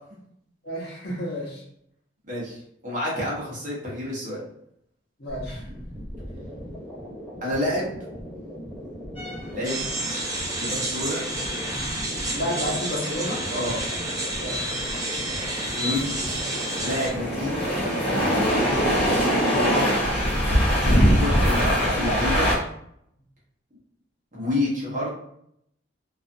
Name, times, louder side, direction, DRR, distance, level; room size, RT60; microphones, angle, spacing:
voice 1, 0.6-1.6 5.2-5.6 12.3-13.4 14.4-14.8, equal, 55° left, -3 dB, 0.8 m, -31 dB
voice 2, 2.3-2.6 2.8-4.4 5.5-5.6 7.4-7.9 9.5-9.7 10.6-11.2 13.5-13.8 15.7-16.2 16.8-17.7 20.8-22.5 24.3-25.1, left 1 dB, 40° right, -4 dB, 0.9 m, -28 dB
sound 1, 5.3-18.4, equal, 5° left, 1.3 m, -37 dB
sound 2, 9.2-22.6, equal, 30° left, 0.8 m, -24 dB
sound 3, 9.6-17.1, right 1 dB, 20° right, 0.4 m, -30 dB
2.4 x 2.4 x 2.5 m, 0.72 s
head